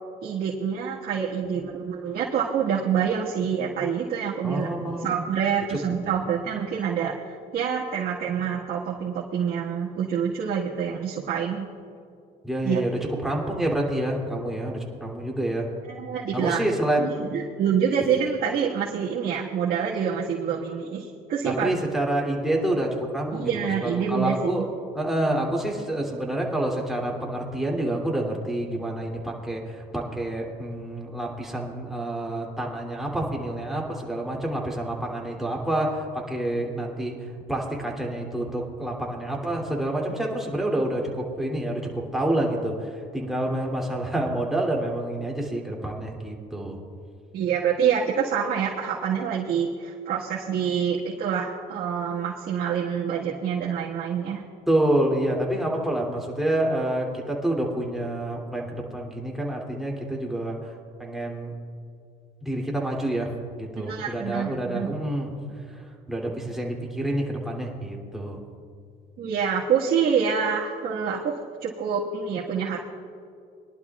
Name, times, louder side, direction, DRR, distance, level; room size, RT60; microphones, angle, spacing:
voice 1, 0.2-4.7 5.0-11.7 12.6-12.8 15.8-16.7 17.0-21.7 23.3-24.6 47.3-54.4 63.8-65.0 69.2-72.8, right 7 dB, 60° right, -5 dB, 1.7 m, -26 dB
voice 2, 4.4-5.2 5.7-5.8 12.4-15.7 16.3-17.1 21.4-24.7 24.9-46.8 54.7-61.5 62.4-65.3 65.7-68.4, right 1 dB, ahead, -3 dB, 2.9 m, -28 dB
23.0 x 11.5 x 2.4 m, 2.4 s
cardioid pair, 110°, 17 cm